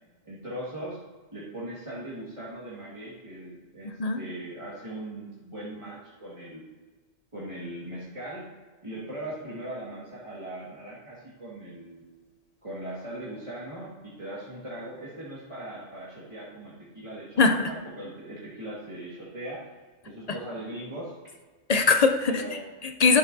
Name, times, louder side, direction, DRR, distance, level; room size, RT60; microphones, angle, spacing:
voice 1, 0.3-1.0 1.3-6.6 7.3-8.5 8.8-12.1 12.6-19.7 20.0-21.2 22.2-22.6, right 1 dB, 25° right, -8 dB, 1.9 m, -39 dB
voice 2, 3.8-4.2 17.4-17.7 21.7-23.2, left 4 dB, 55° left, 6 dB, 0.4 m, -22 dB
11.5 x 7.9 x 2.7 m, 1.3 s
omnidirectional pair, 1.3 m